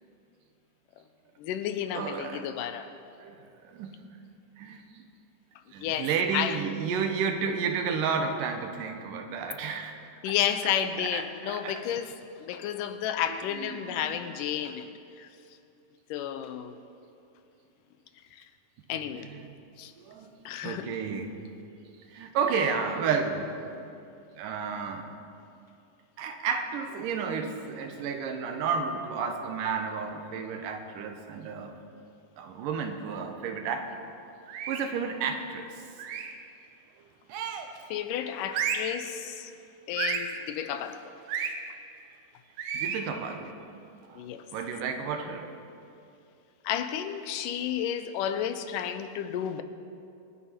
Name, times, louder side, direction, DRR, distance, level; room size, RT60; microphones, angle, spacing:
voice 1, 1.4-2.9 5.8-6.6 10.2-14.9 15.2-15.3 16.1-16.8 18.3-18.5 18.9-19.3 19.8-19.9 20.5-20.9 37.9-39.5 39.9-41.1 44.1-44.4 46.6-49.6, left 9 dB, 85° left, 9 dB, 2.3 m, -32 dB
voice 2, 1.9-2.4 3.2-4.0 4.6-5.0 5.7-10.0 11.0-11.8 13.6-14.2 19.1-19.4 20.0-20.3 20.6-21.3 22.1-23.9 24.3-25.1 26.2-31.7 32.4-34.1 34.7-35.7 42.7-43.7 44.1-44.2 44.5-45.5, right 6 dB, 90° right, 6 dB, 2.6 m, -32 dB
sound 1, 34.5-35.0 36.0-36.4 37.3-37.8 38.5-39.0 40.0-40.4 41.3-41.6 42.6-43.1, right 7 dB, 75° right, 2.2 m, -32 dB
25.5 x 9.6 x 4.4 m, 2.6 s
omnidirectional pair, 3.7 m